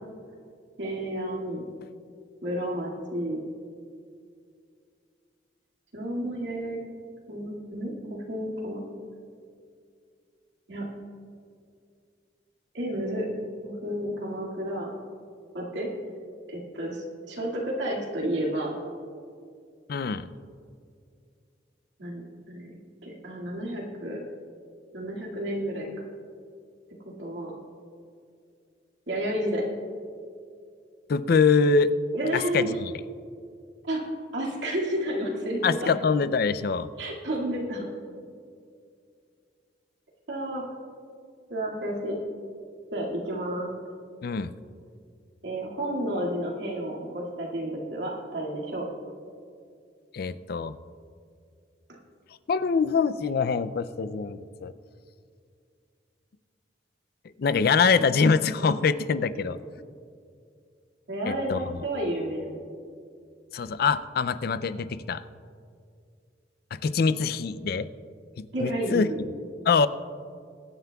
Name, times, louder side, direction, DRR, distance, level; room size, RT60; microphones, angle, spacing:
voice 1, 0.8-1.6 2.4-3.4 5.9-6.8 7.3-8.8 10.7-10.9 12.7-13.3 13.6-14.9 15.5-15.9 16.5-18.8 22.0-24.2 24.9-25.9 27.1-27.5 29.1-29.6 32.1-32.8 33.8-34.0 34.3-35.9 37.0-37.9 40.3-40.6 41.5-42.2 42.9-43.7 45.4-48.9 61.1-62.7 68.5-69.2, right 1 dB, 80° right, -3 dB, 2.1 m, -31 dB
voice 2, 19.9-20.3 31.1-31.9 32.3-32.9 35.6-36.9 44.2-44.5 50.1-50.8 52.5-54.7 57.4-59.6 61.3-61.6 63.5-65.2 66.7-67.9 68.4-69.1 69.7-69.9, left 5 dB, 55° left, 14 dB, 0.4 m, -24 dB
23.0 x 9.5 x 2.3 m, 2.3 s
head